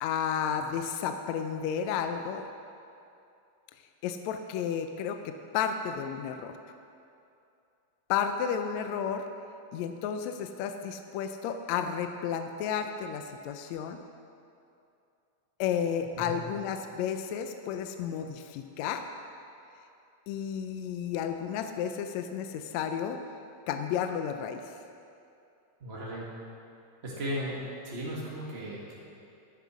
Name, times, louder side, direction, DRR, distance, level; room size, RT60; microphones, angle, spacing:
voice 1, 0.0-2.4 4.0-6.6 8.1-9.3 9.7-14.0 15.6-19.1 20.3-23.2 23.7-24.7, left 8 dB, 80° left, 7 dB, 1.7 m, -32 dB
voice 2, 25.8-26.3 27.0-27.6 27.8-29.0, equal, 30° right, -6 dB, 1.3 m, -36 dB
10.5 x 9.8 x 6.2 m, 2.6 s
omnidirectional pair, 3.6 m